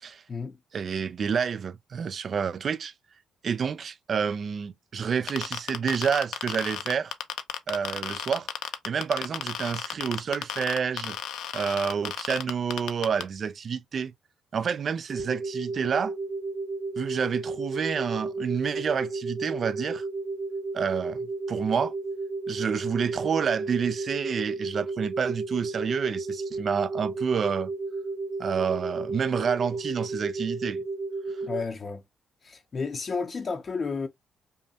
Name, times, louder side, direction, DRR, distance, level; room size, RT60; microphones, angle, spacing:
voice 1, 0.7-2.9 3.4-7.1 7.7-8.5 8.8-11.2 11.5-14.1 14.5-16.1 17.0-20.0 20.7-21.9 22.5-27.7 28.4-30.8 31.4-31.5, right 6 dB, 50° right, 0.4 m, -29 dB
sound 1, 5.3-13.2, left 11 dB, 85° left, 0.6 m, -32 dB
sound 2, 15.1-31.6, right 3 dB, 35° right, 1.1 m, -33 dB
voice 2, 31.5-32.0 32.4-34.1, left 4 dB, 40° left, 0.6 m, -32 dB
5.3 x 2.2 x 2.7 m
cardioid pair, 90°, 0 cm